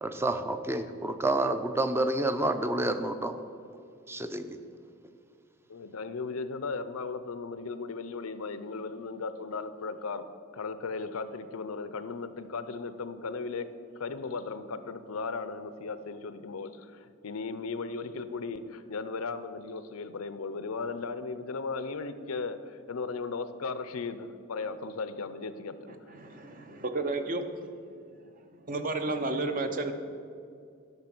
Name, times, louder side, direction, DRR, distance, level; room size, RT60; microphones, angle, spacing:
voice 1, 0.0-3.4 4.1-4.6, right 2 dB, 10° right, 9 dB, 0.5 m, -29 dB
voice 2, 5.7-10.3 10.5-13.7 14.0-16.9 17.2-26.0, left 4 dB, 80° left, 12 dB, 0.6 m, -36 dB
voice 3, 25.9-27.6 28.7-29.9, right 2 dB, 40° right, 7 dB, 0.8 m, -32 dB
12.0 x 5.8 x 6.0 m, 2.3 s
head